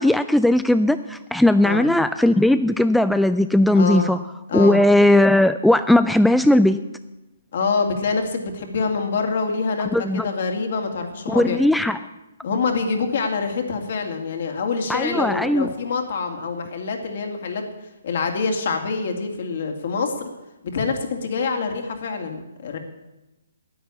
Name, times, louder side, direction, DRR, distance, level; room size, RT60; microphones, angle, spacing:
voice 1, 0.0-4.2 4.5-6.8 9.9-10.3 11.3-12.0 14.9-15.7, left 1 dB, ahead, 11 dB, 0.3 m, -17 dB
voice 2, 3.7-4.1 4.5-4.8 7.5-11.6 12.4-17.6 18.0-20.3 20.6-22.8, left 4 dB, 55° left, 4 dB, 2.4 m, -25 dB
10.0 x 9.3 x 8.4 m, 0.99 s
figure-of-eight pair, 140°, 0 cm